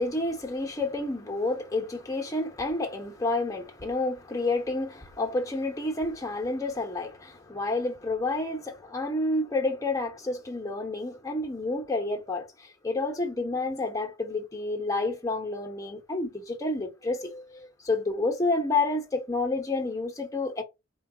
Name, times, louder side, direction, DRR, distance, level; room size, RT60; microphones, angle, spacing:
voice 1, 0.0-20.6, left 2 dB, 15° left, 0.9 m, -29 dB
4.5 x 2.3 x 3.8 m
head